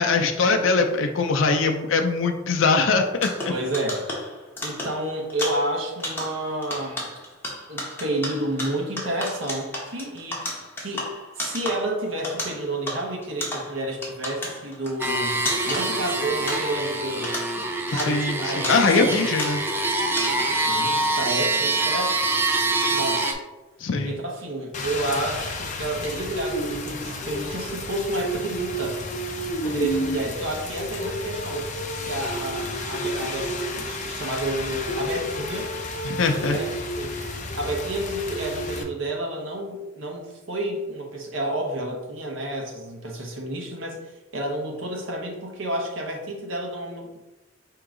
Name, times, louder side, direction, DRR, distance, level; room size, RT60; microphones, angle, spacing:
voice 1, 0.0-3.5 17.9-19.6 23.8-24.2 36.0-36.6, left 4 dB, 85° left, 4 dB, 0.5 m, -22 dB
sound 1, 3.2-17.0 17.2-19.9 20.2-20.7, left 1 dB, 10° left, 0.9 m, -34 dB
voice 2, 3.5-4.1 4.6-7.1 7.7-10.4 10.8-17.4 17.9-19.1 20.7-22.2 22.9-23.4 24.1-29.0 29.6-31.7 32.0-35.7 36.5-36.7 36.9-47.2, right 1 dB, 90° right, 0 dB, 1.1 m, -30 dB
sound 2, 15.0-23.3, right 2 dB, 10° right, 0.4 m, -25 dB
Rain, 24.7-38.8, left 1 dB, 40° left, 0.6 m, -31 dB
4.6 x 2.9 x 3.7 m, 1.1 s
head